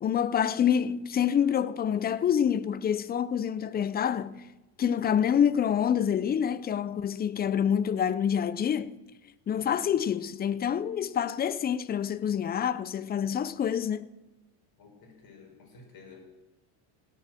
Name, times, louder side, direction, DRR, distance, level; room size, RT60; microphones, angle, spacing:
voice 1, 0.0-4.5 4.8-9.0 9.5-14.1, left 8 dB, 20° left, 0.3 m, -27 dB
voice 2, 14.8-16.3, left 4 dB, 45° left, 4.6 m, -52 dB
17.0 x 7.5 x 7.5 m
supercardioid pair, 115°, 49 cm